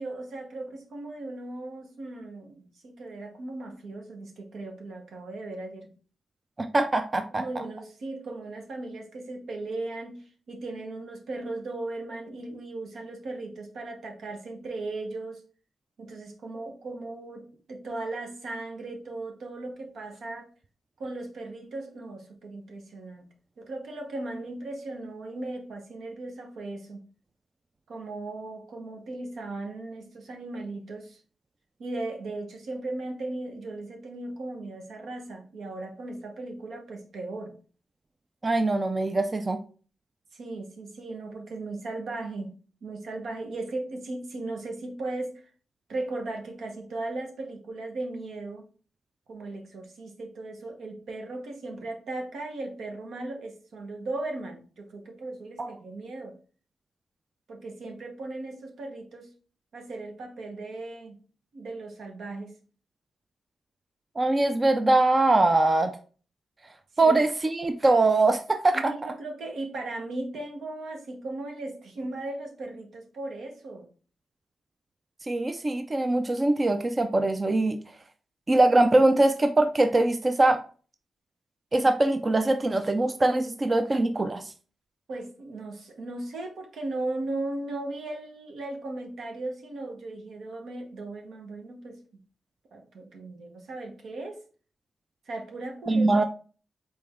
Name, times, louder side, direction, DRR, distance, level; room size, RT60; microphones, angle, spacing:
voice 1, 0.0-5.9 7.3-15.4 16.0-20.5 21.0-23.3 23.6-27.0 27.9-31.2 31.8-37.6 40.3-42.5 42.8-45.5 45.9-48.7 49.3-56.4 57.5-59.3 59.7-61.2 61.5-62.6 67.0-67.2 68.7-73.9 85.1-92.0 92.7-94.4 95.2-96.2, right 2 dB, 80° right, 3 dB, 1.0 m, -37 dB
voice 2, 6.6-7.4 38.4-39.6 55.6-55.7 64.2-66.0 67.0-68.8 75.3-77.8 78.5-80.6 81.7-84.4 95.9-96.2, right 2 dB, 30° right, 8 dB, 0.4 m, -22 dB
4.2 x 3.3 x 3.5 m, 0.39 s
cardioid pair, 90°, 0 cm